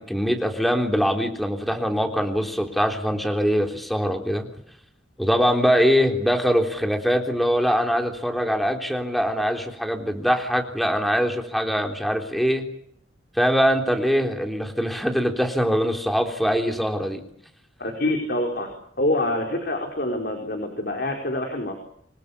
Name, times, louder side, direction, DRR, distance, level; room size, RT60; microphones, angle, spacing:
voice 1, 0.0-4.5 5.2-12.6 13.4-17.2, equal, ahead, 3 dB, 3.5 m, -23 dB
voice 2, 17.8-18.7 19.0-21.7, left 1 dB, 50° left, 2 dB, 4.7 m, -26 dB
27.5 x 20.5 x 8.6 m, 0.68 s
head